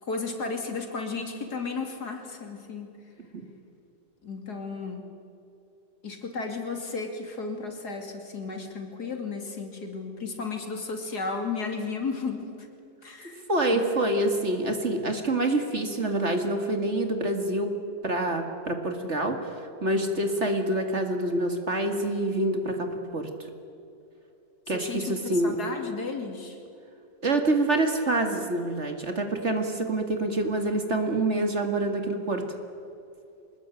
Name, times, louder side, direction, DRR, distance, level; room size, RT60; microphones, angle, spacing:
voice 1, 0.0-2.9 4.2-5.1 6.0-12.7 13.0-13.4 13.7-13.8 19.9-20.1 24.7-25.1 25.4-26.6, left 4 dB, 65° left, 4 dB, 3.3 m, -34 dB
voice 2, 13.2-17.7 18.0-19.5 19.8-23.3 24.7-25.5 27.2-32.4, right 2 dB, 40° right, 5 dB, 2.3 m, -26 dB
24.0 x 21.0 x 9.0 m, 2.7 s
omnidirectional pair, 1.9 m